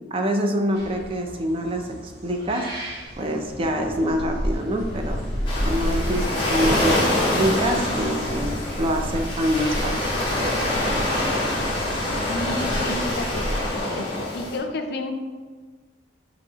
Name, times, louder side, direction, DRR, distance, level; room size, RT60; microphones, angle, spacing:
voice 1, 0.0-2.7 3.2-5.2 5.6-10.0, equal, 30° right, 4 dB, 0.4 m, -25 dB
sound 1, 0.7-13.8, equal, 70° right, 1.4 m, -33 dB
sound 2, 3.4-13.4, equal, 5° left, 1.5 m, -36 dB
Waves surf, 5.5-14.6, left 1 dB, 25° left, 1.1 m, -25 dB
voice 2, 12.2-13.5 13.9-14.1 14.3-15.1, left 2 dB, 60° left, 5 dB, 0.5 m, -31 dB
5.4 x 3.1 x 2.8 m, 1.4 s
head